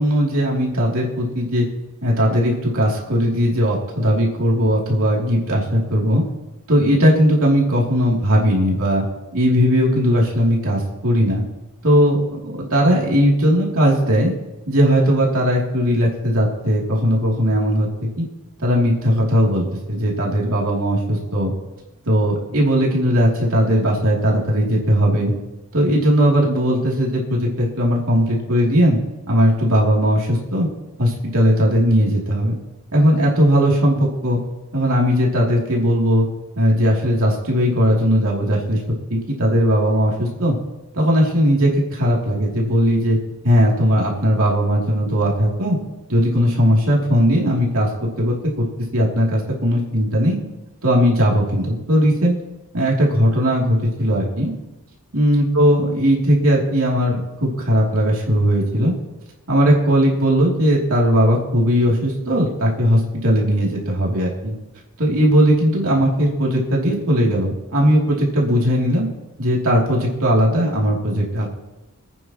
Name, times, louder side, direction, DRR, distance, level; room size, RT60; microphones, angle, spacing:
voice 1, 0.0-1.7 2.0-6.2 6.7-9.0 9.3-11.4 11.8-14.3 14.7-18.2 18.6-21.5 22.1-25.3 25.7-29.0 29.3-30.7 31.0-32.5 32.9-34.4 34.7-36.2 36.6-40.6 40.9-43.2 43.4-45.8 46.1-48.7 48.9-50.4 50.8-52.4 52.7-54.5 55.1-58.9 59.5-64.5 65.0-69.1 69.4-71.5, equal, 75° right, -3 dB, 2.8 m, -18 dB
27.0 x 9.2 x 3.0 m, 1.0 s
head